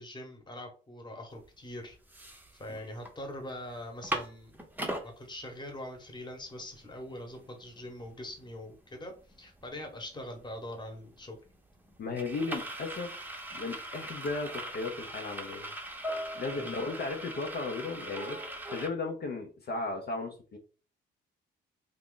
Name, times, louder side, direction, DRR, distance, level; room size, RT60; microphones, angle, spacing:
voice 1, 0.0-2.2 2.6-4.6 5.0-9.1 9.4-11.4 16.5-16.7, left 1 dB, 20° left, 3 dB, 1.1 m, -43 dB
sound 1, 1.5-1.6 1.9-3.1 3.5-3.6 3.8-5.1 5.7-5.8 6.0-18.9, right 1 dB, 10° right, 0.7 m, -40 dB
voice 2, 12.0-13.2 13.5-15.7 16.3-18.4 18.7-20.6, left 3 dB, 55° left, 2 dB, 0.7 m, -35 dB
2.8 x 2.5 x 3.7 m, 0.36 s
cardioid pair, 90°, 20 cm